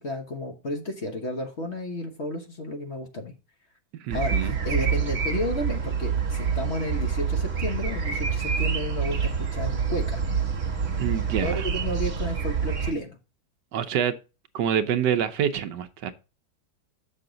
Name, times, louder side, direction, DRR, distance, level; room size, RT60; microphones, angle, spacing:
voice 1, 0.0-3.3 4.1-10.2 11.4-13.2, left 1 dB, 40° left, 1.3 m, -32 dB
voice 2, 4.0-4.6 11.0-11.6 13.7-14.2 14.5-16.1, right 9 dB, 70° right, 1.3 m, -26 dB
sound 1, 4.1-12.9, right 6 dB, 45° right, 1.6 m, -27 dB
7.1 x 6.7 x 3.9 m
omnidirectional pair, 2.0 m